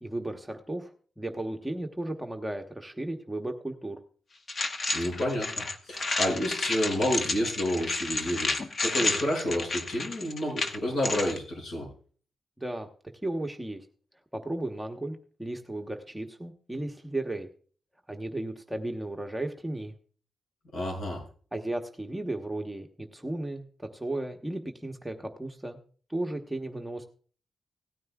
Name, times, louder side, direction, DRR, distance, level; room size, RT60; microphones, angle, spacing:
voice 1, 0.0-4.0 12.6-12.9 13.2-13.9 14.3-17.5 18.1-19.9 21.5-25.8 26.1-27.1, right 1 dB, 5° right, 4 dB, 1.1 m, -35 dB
sound 1, 4.5-11.4, left 3 dB, 45° left, 1.1 m, -31 dB
voice 2, 4.9-5.5 5.9-8.5 8.8-11.9 20.7-21.2, equal, 65° left, -1 dB, 6.3 m, -29 dB
17.5 x 9.3 x 2.4 m, 0.43 s
cardioid pair, 90°, 0 cm